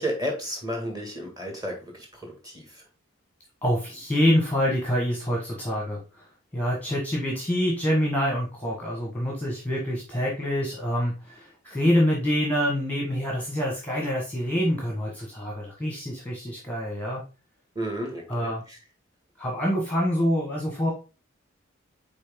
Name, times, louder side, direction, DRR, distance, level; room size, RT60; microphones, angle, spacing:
voice 1, 0.0-2.9 17.8-18.8, equal, 15° right, 1 dB, 1.8 m, -33 dB
voice 2, 3.6-6.3 6.5-17.2 18.3-18.6 19.4-20.9, equal, 5° left, -1 dB, 1.2 m, -26 dB
6.3 x 4.3 x 3.6 m, 0.33 s
head